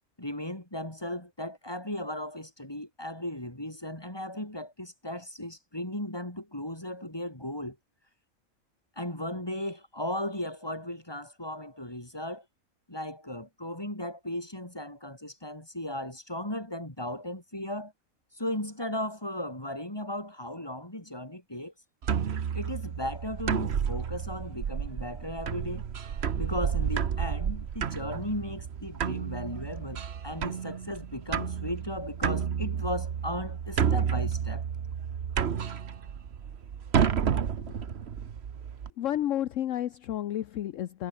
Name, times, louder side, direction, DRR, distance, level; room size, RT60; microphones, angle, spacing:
voice 1, 0.2-7.8 9.0-12.4 12.9-17.9 18.3-21.7 22.5-25.9 26.4-34.6, left 1 dB, 15° left, 4.8 m, -36 dB
sound 1, 22.0-38.9, right 7 dB, 50° right, 1.2 m, -31 dB
voice 2, 39.0-41.1, left 12 dB, 65° left, 1.0 m, -31 dB
omnidirectional pair, 1.5 m